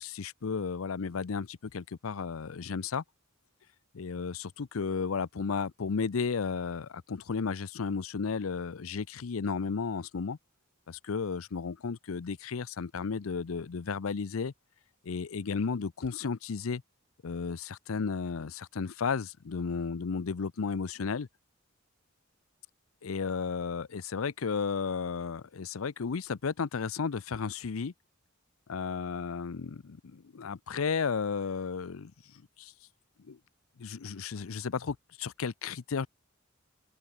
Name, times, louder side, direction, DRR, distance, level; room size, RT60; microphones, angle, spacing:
voice 1, 0.0-3.0 3.9-10.4 10.9-14.5 15.0-16.8 17.2-21.3 23.0-27.9 28.7-32.7 33.3-33.4 33.8-36.1, left 5 dB, 85° left, 0.6 m, -33 dB
open air
head